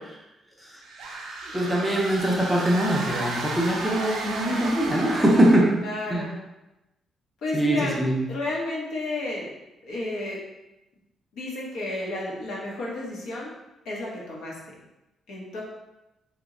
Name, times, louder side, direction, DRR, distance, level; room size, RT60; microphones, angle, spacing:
sound 1, 0.8-5.8, right 3 dB, 90° right, 0.5 m, -33 dB
voice 1, 1.5-5.7 6.1-6.2 7.5-8.2, right 1 dB, 5° right, -3 dB, 0.5 m, -22 dB
voice 2, 5.8-6.4 7.4-8.0 8.3-9.5 9.8-10.4 11.3-13.5 13.8-14.8 15.3-15.6, left 2 dB, 80° left, -3 dB, 0.8 m, -32 dB
2.9 x 2.1 x 3.6 m, 0.97 s
cardioid pair, 180°, 0 cm